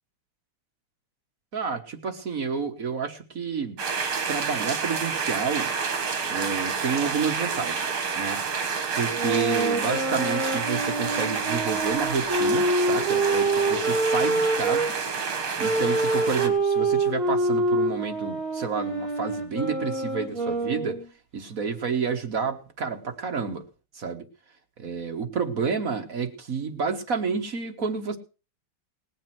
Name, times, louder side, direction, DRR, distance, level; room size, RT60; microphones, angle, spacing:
voice 1, 1.5-3.8 4.3-5.7 6.2-8.4 8.9-14.9 15.6-21.0 21.3-23.6 23.9-24.2 24.8-28.2, right 5 dB, 45° right, 5 dB, 1.7 m, -30 dB
sound 1, 3.8-16.5, right 5 dB, 80° right, 2.8 m, -29 dB
sound 2, 9.1-14.9 15.6-21.1, right 2 dB, 15° left, 5.8 m, -26 dB
19.0 x 7.7 x 6.0 m, 0.35 s
omnidirectional pair, 2.3 m